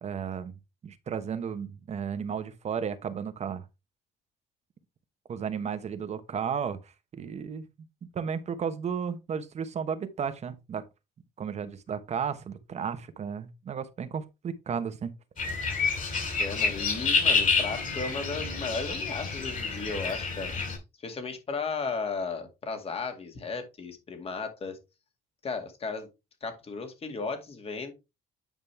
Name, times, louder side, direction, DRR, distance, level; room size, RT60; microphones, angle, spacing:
voice 1, 0.0-3.7 5.3-7.7 8.1-10.8 11.4-15.1, right 7 dB, 40° right, 1.1 m, -34 dB
sound 1, 15.4-20.8, left 4 dB, 50° left, 5.0 m, -28 dB
voice 2, 16.4-20.5 21.0-24.8 25.4-26.1 26.4-27.9, left 4 dB, 35° left, 2.1 m, -35 dB
9.3 x 5.2 x 3.4 m
cardioid pair, 110°, 17 cm